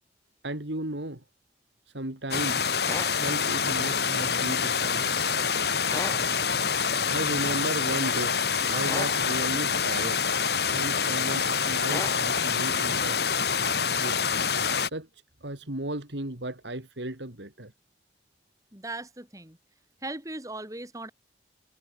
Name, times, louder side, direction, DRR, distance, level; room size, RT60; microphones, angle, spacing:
voice 1, 0.4-1.2 1.9-2.6 3.1-5.0 7.1-8.4 8.7-10.3 10.6-13.3 14.0-14.2 14.8-15.1 15.4-17.7, right 1 dB, 85° right, 3.7 m, -35 dB
sound 1, 2.3-14.9, left 6 dB, 65° left, 4.0 m, -26 dB
sound 2, 2.8-3.1 5.9-6.2 8.8-9.2 11.9-12.2, left 2 dB, 15° left, 3.9 m, -34 dB
voice 2, 18.7-19.6 20.0-21.1, right 2 dB, 20° right, 3.8 m, -38 dB
head